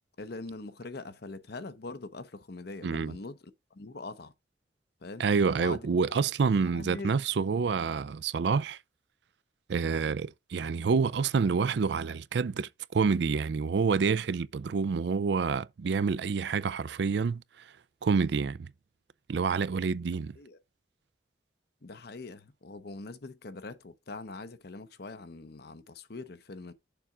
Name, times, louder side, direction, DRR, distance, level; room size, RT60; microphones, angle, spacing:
voice 1, 0.2-3.4 3.7-4.3 5.0-5.3 5.6-7.1 10.8-11.0 20.4-20.6 21.8-26.7, left 3 dB, 60° left, 0.8 m, -43 dB
voice 2, 2.8-3.2 5.2-8.8 9.7-17.4 18.0-18.7 19.3-20.4, right 5 dB, 65° right, 0.4 m, -28 dB
6.8 x 3.5 x 6.0 m
head